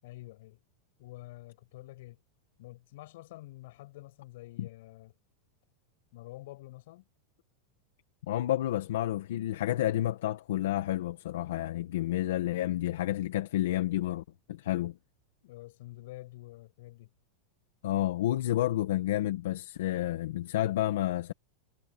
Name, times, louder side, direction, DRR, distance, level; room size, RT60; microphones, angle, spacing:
voice 1, 0.0-0.6 1.0-2.2 2.6-5.1 6.1-7.1 15.4-17.1, left 18 dB, 55° left, 7.7 m, -48 dB
voice 2, 8.3-15.0 17.8-21.3, left 13 dB, 70° left, 1.7 m, -30 dB
supercardioid pair, 175°, 0 cm